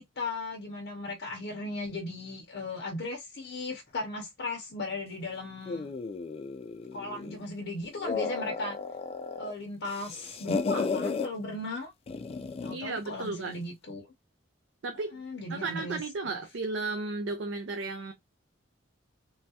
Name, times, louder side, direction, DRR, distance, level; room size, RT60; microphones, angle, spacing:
voice 1, 0.0-5.9 6.9-8.8 9.4-11.9 12.6-14.1 15.1-16.4, left 2 dB, 65° left, 0.6 m, -37 dB
sound 1, 5.7-7.4 7.8-9.5 9.8-11.3 12.1-12.8, left 4 dB, 30° left, 0.3 m, -34 dB
voice 2, 12.7-13.5 14.8-15.2 15.5-18.1, right 3 dB, 70° right, 0.5 m, -34 dB
3.1 x 2.3 x 2.7 m
head